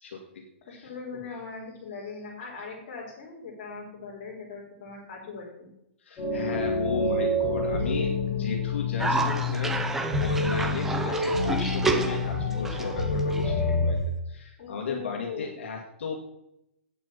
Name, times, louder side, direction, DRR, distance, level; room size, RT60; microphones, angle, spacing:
voice 1, 0.0-1.2 6.0-14.0 14.3-16.2, left 5 dB, 65° left, 0 dB, 2.0 m, -36 dB
voice 2, 0.7-5.7 14.6-15.6, left 4 dB, 35° left, -3 dB, 4.2 m, -40 dB
sound 1, 6.2-13.9, left 2 dB, 10° left, 3.8 m, -27 dB
Cough, 9.0-14.1, right 3 dB, 5° right, 0.5 m, -30 dB
8.8 x 7.6 x 7.1 m, 0.82 s
hypercardioid pair, 175°, 7 cm